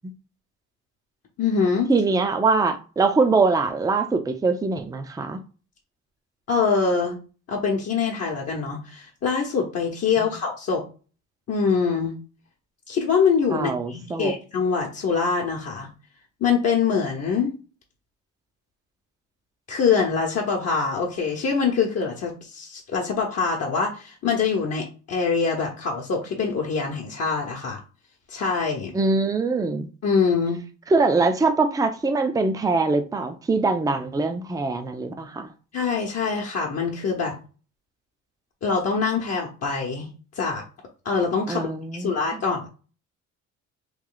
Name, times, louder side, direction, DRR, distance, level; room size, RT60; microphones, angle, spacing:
voice 1, 1.4-1.9 6.5-7.2 7.5-10.8 11.5-12.1 12.9-15.9 16.4-17.5 19.7-27.8 28.3-28.9 30.0-30.6 35.7-37.3 38.6-40.1 40.4-40.6 41.0-42.7, left 5 dB, 55° left, 0.9 m, -24 dB
voice 2, 1.9-5.4 10.2-10.3 13.5-14.3 28.9-29.9 30.9-35.5 41.5-42.1, right 3 dB, 10° right, 0.5 m, -23 dB
3.1 x 2.3 x 3.8 m
cardioid pair, 90°, 30 cm